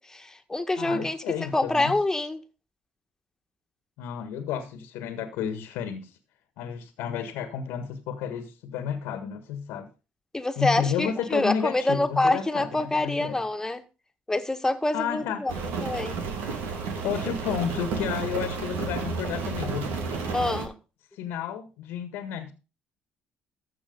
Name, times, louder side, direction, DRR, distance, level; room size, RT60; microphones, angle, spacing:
voice 1, 0.1-1.2 1.5-2.4 10.3-13.8 14.3-15.5 15.8-16.2 20.3-20.7, left 2 dB, 15° left, 1.9 m, -26 dB
voice 2, 0.8-1.9 4.0-6.1 6.6-9.9 10.6-13.4 14.9-15.4 17.0-19.9 21.1-22.5, left 8 dB, 85° left, 1.7 m, -31 dB
Rain, 15.5-20.7, right 4 dB, 80° right, 2.9 m, -31 dB
14.5 x 6.1 x 5.4 m
supercardioid pair, 70°, 4 cm